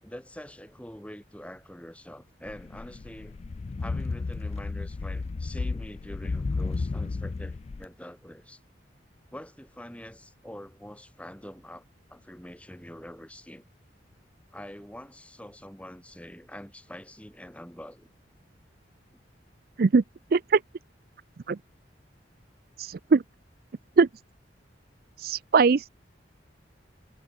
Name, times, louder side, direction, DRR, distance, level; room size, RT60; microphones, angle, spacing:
voice 1, 0.0-3.4 3.8-8.6 9.3-11.8 12.1-13.6 14.5-18.1, equal, 5° left, 3.8 m, -45 dB
sound 1, 2.5-7.8, left 3 dB, 35° left, 0.3 m, -33 dB
voice 2, 22.8-23.2 24.0-24.1 25.2-25.9, right 4 dB, 50° right, 0.4 m, -21 dB
head